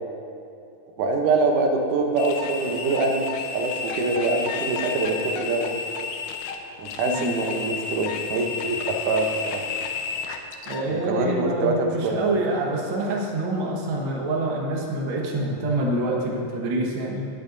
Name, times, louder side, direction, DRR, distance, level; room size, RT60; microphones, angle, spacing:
voice 1, 1.0-3.3 3.5-5.7 6.8-9.6 10.9-12.2, right 3 dB, 90° right, 2 dB, 2.5 m, -24 dB
sound 1, 2.2-10.9, left 5 dB, 80° left, 2.1 m, -32 dB
voice 2, 7.0-7.4 10.7-17.3, right 2 dB, 50° right, -2 dB, 1.9 m, -26 dB
19.5 x 8.6 x 2.7 m, 2.6 s
omnidirectional pair, 3.5 m